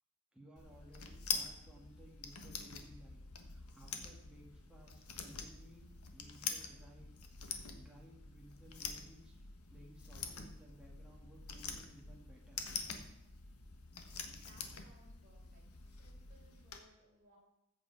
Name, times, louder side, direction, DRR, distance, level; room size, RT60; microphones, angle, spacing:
voice 1, 0.3-7.1 7.4-9.4 9.7-12.6, right 1 dB, 5° right, -3 dB, 2.1 m, -60 dB
sound 1, 0.6-16.8, left 6 dB, 90° left, 1.4 m, -46 dB
voice 2, 14.3-15.7 15.9-17.4, right 1 dB, 35° right, -4 dB, 5.0 m, -66 dB
14.0 x 8.1 x 4.8 m, 0.90 s
head